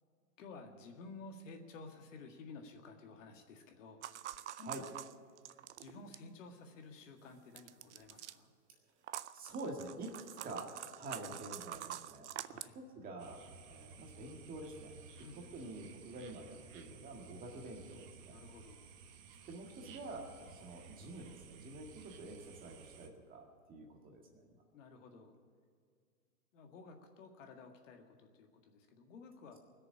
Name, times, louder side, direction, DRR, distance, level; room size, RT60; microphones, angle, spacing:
voice 1, 0.4-4.8 5.8-8.5 12.4-12.8 15.1-15.7 18.3-18.9 24.7-25.4 26.5-29.6, left 3 dB, 50° left, 4 dB, 1.9 m, -53 dB
sound 1, 4.0-6.3 7.6-8.3 9.0-12.7, right 12 dB, 50° right, 0.5 m, -46 dB
voice 2, 9.3-15.0 15.5-18.4 19.5-24.6, right 2 dB, 20° right, 2 dB, 1.8 m, -48 dB
sound 2, 13.2-23.1, right 5 dB, 35° right, 1.2 m, -56 dB
20.0 x 6.9 x 10.0 m, 2.1 s
hypercardioid pair, 125°, 46 cm